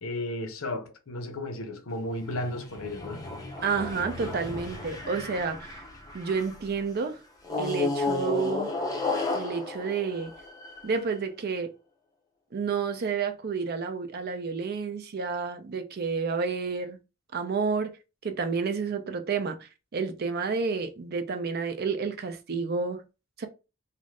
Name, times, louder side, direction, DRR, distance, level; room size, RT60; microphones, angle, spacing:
voice 1, 0.0-3.3, left 1 dB, 85° left, 0.7 m, -34 dB
sound 1, 2.0-6.7 7.4-11.0, left 3 dB, 20° left, 0.5 m, -33 dB
voice 2, 3.6-5.8 6.1-7.2 7.6-8.7 9.3-10.3 10.8-11.7 12.5-17.0 17.3-18.0 18.2-23.0 23.4-23.5, right 5 dB, 50° right, 0.4 m, -30 dB
2.5 x 2.5 x 3.2 m
head